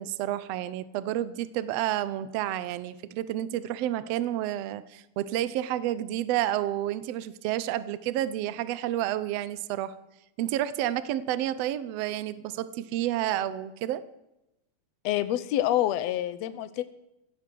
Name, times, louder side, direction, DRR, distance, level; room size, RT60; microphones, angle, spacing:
voice 1, 0.0-9.9 10.4-14.0, right 13 dB, 85° right, 15 dB, 1.4 m, -30 dB
voice 2, 15.0-16.8, left 13 dB, 70° left, 13 dB, 1.7 m, -27 dB
16.5 x 13.0 x 6.2 m, 0.91 s
omnidirectional pair, 3.8 m